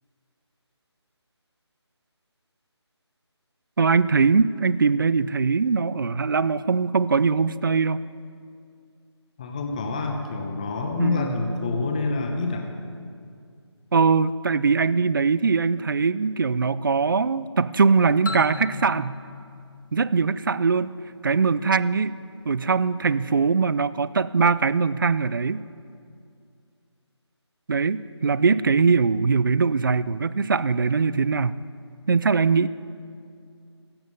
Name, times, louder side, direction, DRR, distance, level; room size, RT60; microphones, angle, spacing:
voice 1, 3.8-8.0 11.0-11.4 13.9-19.2 19.9-20.9 21.2-22.2 22.4-25.6 27.7-31.5 32.1-32.7, right 5 dB, 50° right, 18 dB, 0.4 m, -21 dB
voice 2, 9.4-12.7, left 3 dB, 15° left, 3 dB, 0.8 m, -27 dB
sound 1, 18.3-21.0, left 3 dB, 45° left, 1.5 m, -37 dB
16.0 x 11.0 x 5.3 m, 2.3 s
figure-of-eight pair, 165°, 15 cm